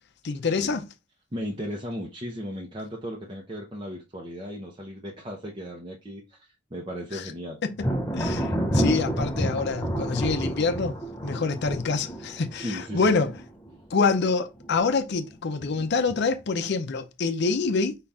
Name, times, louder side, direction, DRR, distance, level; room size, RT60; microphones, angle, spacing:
voice 1, 0.2-0.9 7.1-7.3 7.6-13.3 13.9-18.0, left 4 dB, 55° left, 0.5 m, -26 dB
voice 2, 1.3-7.6 12.6-13.2, equal, 25° right, 0.7 m, -36 dB
Thunder, 7.8-14.2 14.6-15.2 15.6-16.4, right 1 dB, 15° left, 0.6 m, -29 dB
5.6 x 2.4 x 3.4 m
head